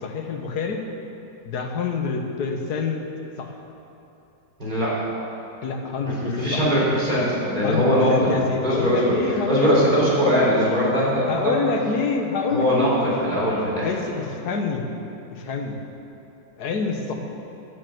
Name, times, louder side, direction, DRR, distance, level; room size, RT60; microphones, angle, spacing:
voice 1, 0.0-0.8 1.4-3.0 3.4-3.5 5.6-6.6 7.6-10.5 11.3-12.9 13.8-14.9 15.3-15.8 16.6-17.2, left 4 dB, 60° left, 3 dB, 1.6 m, -27 dB
voice 2, 4.6-5.0 6.0-8.4 8.6-9.1 9.5-11.6 12.5-13.9, equal, 25° right, -7 dB, 3.8 m, -21 dB
10.5 x 8.9 x 7.9 m, 3.0 s
omnidirectional pair, 2.1 m